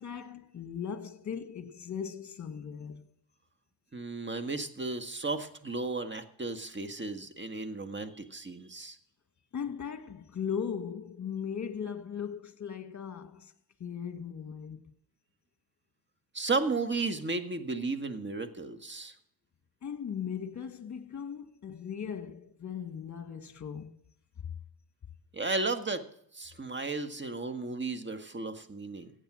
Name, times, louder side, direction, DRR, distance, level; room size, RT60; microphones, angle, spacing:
voice 1, 0.0-3.1 9.5-13.5 13.8-14.9 19.8-23.9 24.4-24.6, left 7 dB, 45° left, 1.6 m, -38 dB
voice 2, 3.9-9.0 16.3-19.1 25.3-26.0 26.3-29.1, right 3 dB, 25° right, 1.7 m, -34 dB
15.0 x 9.0 x 6.2 m
cardioid pair, 65°, 42 cm